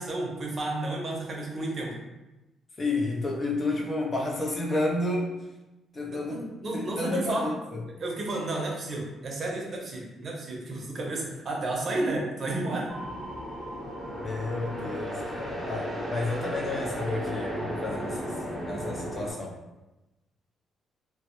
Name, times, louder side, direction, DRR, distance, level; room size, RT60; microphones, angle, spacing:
voice 1, 0.0-1.9 6.1-7.5 8.0-12.9, right 2 dB, 45° right, -1 dB, 0.6 m, -32 dB
voice 2, 2.8-5.3 5.9-6.5 6.7-7.8 14.2-18.3 18.7-19.6, left 2 dB, 35° left, -1 dB, 0.5 m, -31 dB
sound 1, 12.9-19.3, equal, 10° left, 0.9 m, -34 dB
2.1 x 2.0 x 2.9 m, 1.0 s
cardioid pair, 90°, 0 cm